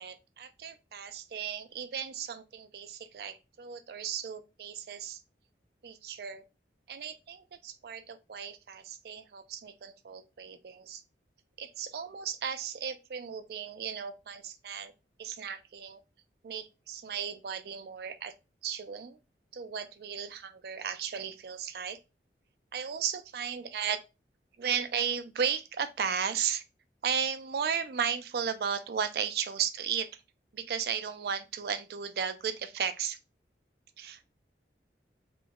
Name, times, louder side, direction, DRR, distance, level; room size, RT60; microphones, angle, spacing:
voice 1, 0.0-5.2 5.8-6.4 6.9-11.0 11.6-14.9 15.2-16.0 16.4-18.3 18.6-19.2 19.5-22.0 22.7-24.0 24.6-26.6 27.0-30.2 30.5-33.2 34.0-34.2, right 7 dB, 60° right, 0.4 m, -35 dB
3.0 x 2.0 x 3.4 m
head